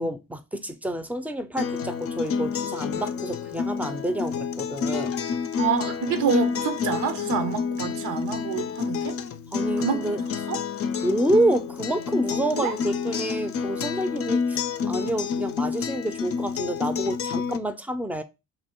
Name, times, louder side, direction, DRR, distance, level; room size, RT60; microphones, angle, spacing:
voice 1, 0.0-5.1 9.5-10.2 11.0-18.2, right 1 dB, 5° right, 0.5 m, -28 dB
Acoustic guitar, 1.6-17.6, left 6 dB, 50° left, 0.5 m, -29 dB
voice 2, 5.6-9.2 9.8-10.6 12.5-12.7, right 7 dB, 90° right, 0.9 m, -28 dB
3.0 x 3.0 x 4.4 m
cardioid pair, 90°, 30 cm